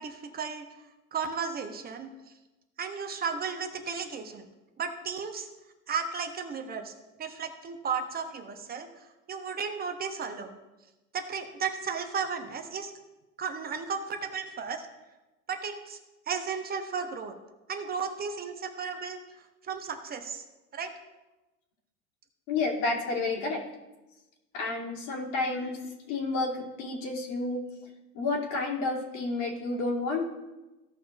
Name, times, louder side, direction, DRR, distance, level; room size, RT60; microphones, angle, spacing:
voice 1, 0.0-2.1 2.8-4.5 4.8-5.5 5.9-6.9 7.2-10.6 11.1-12.9 13.4-14.9 15.5-16.0 16.3-17.3 17.7-19.2 19.6-20.4 20.7-20.9, right 6 dB, 20° right, 6 dB, 0.8 m, -34 dB
voice 2, 22.5-23.6 24.5-25.8 26.1-27.6 28.1-30.2, left 3 dB, 50° left, -2 dB, 2.8 m, -30 dB
15.5 x 5.8 x 2.5 m, 1.1 s
hypercardioid pair, 110°, 47 cm